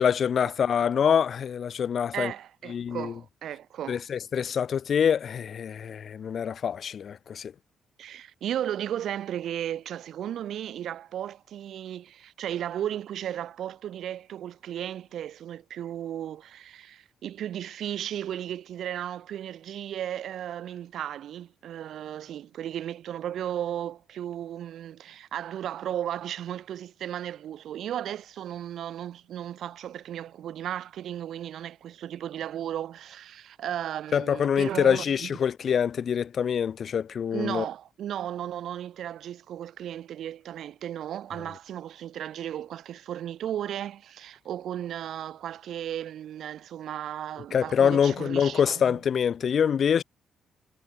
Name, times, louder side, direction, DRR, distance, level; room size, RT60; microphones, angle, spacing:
voice 1, 0.0-2.3 2.7-3.1 3.9-7.5 34.1-37.6 47.5-50.0, left 7 dB, 55° left, 0.8 m, -25 dB
voice 2, 2.1-4.0 8.0-35.3 37.3-49.0, right 10 dB, 70° right, 0.5 m, -35 dB
cardioid pair, 90°, 0 cm